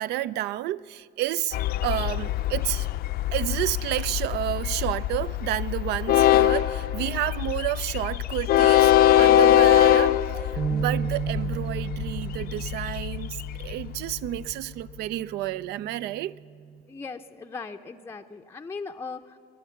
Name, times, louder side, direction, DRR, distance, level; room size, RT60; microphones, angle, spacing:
voice 1, 0.0-1.6 1.8-2.9 3.3-10.4 10.7-16.4, right 14 dB, 80° right, 0.4 m, -30 dB
Train, 1.5-14.5, left 12 dB, 65° left, 0.5 m, -23 dB
sound 1, 10.6-16.8, right 7 dB, 30° right, 0.9 m, -34 dB
voice 2, 16.9-19.4, left 4 dB, 15° left, 0.5 m, -39 dB
20.5 x 9.2 x 7.1 m
cardioid pair, 110°, 17 cm